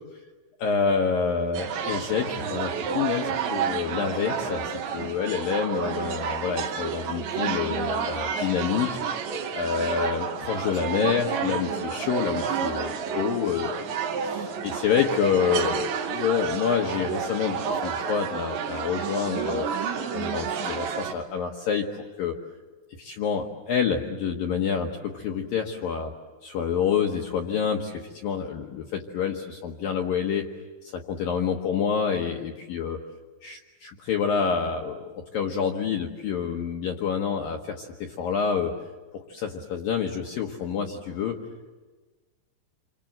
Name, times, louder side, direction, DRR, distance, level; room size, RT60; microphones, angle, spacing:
voice 1, 0.6-8.9 9.5-13.9 14.2-19.7 20.1-21.9 22.2-22.4 23.0-26.1 26.4-30.5 30.8-33.0 33.4-38.8 39.1-41.4, left 7 dB, 75° left, 2 dB, 2.0 m, -28 dB
sound 1, 1.5-21.1, right 7 dB, 70° right, 3.6 m, -30 dB
28.5 x 26.0 x 7.9 m, 1.3 s
omnidirectional pair, 5.9 m